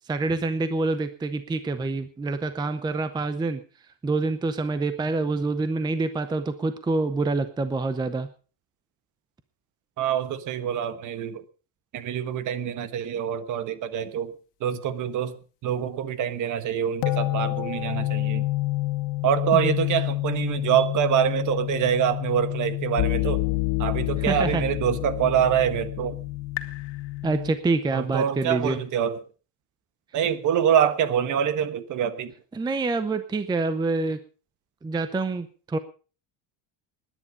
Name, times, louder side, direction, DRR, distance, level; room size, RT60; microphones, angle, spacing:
voice 1, 0.1-3.6 4.0-8.3 19.5-19.8 24.3-24.6 27.2-28.8 32.5-34.2 34.8-35.8, right 3 dB, 10° right, 11 dB, 0.6 m, -26 dB
voice 2, 10.0-11.4 11.9-14.3 14.6-15.4 15.6-18.5 19.2-23.5 23.8-26.2 27.9-29.2 30.1-32.3, right 9 dB, 45° right, 13 dB, 1.4 m, -25 dB
sound 1, 17.0-27.5, left 19 dB, 80° left, 1.9 m, -28 dB
19.5 x 10.0 x 5.1 m, 0.37 s
cardioid pair, 170°, 42 cm